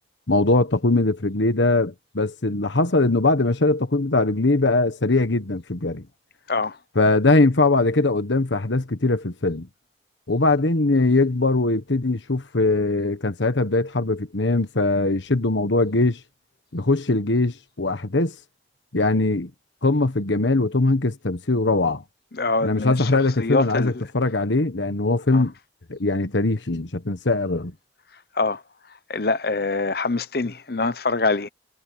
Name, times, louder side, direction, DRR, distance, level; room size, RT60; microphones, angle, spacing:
voice 1, 0.3-6.0 6.9-9.7 10.3-16.2 16.7-18.3 18.9-19.5 19.8-22.0 22.6-25.5 25.9-27.7, left 2 dB, 80° left, 1.3 m, -21 dB
voice 2, 22.3-24.0 25.3-25.5 28.3-28.6 29.1-31.5, left 3 dB, 55° left, 0.9 m, -24 dB
head